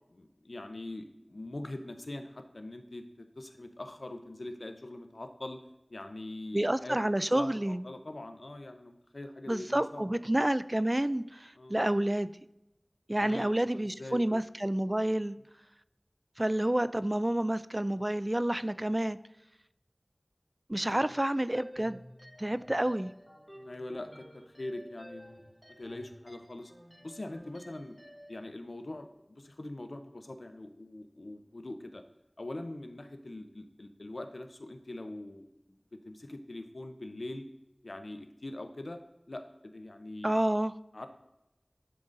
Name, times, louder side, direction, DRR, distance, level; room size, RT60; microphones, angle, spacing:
voice 1, 0.1-3.0 3.4-5.6 5.9-7.0 7.3-10.4 11.6-11.7 13.2-14.4 20.8-21.2 23.5-25.4 25.8-26.7 27.0-28.0 28.3-32.0 32.4-35.8 36.0-37.4 37.8-39.0 39.3-40.4 40.9-41.1, left 1 dB, 90° left, 7 dB, 0.7 m, -43 dB
voice 2, 6.5-7.9 9.5-12.3 13.1-15.4 16.4-19.2 20.7-22.0 22.4-23.1 40.2-40.7, right 1 dB, 30° right, 15 dB, 0.3 m, -29 dB
sound 1, 21.5-28.4, equal, 5° right, 2.0 m, -52 dB
10.5 x 3.9 x 3.8 m, 0.95 s
wide cardioid pair, 40°, 0 cm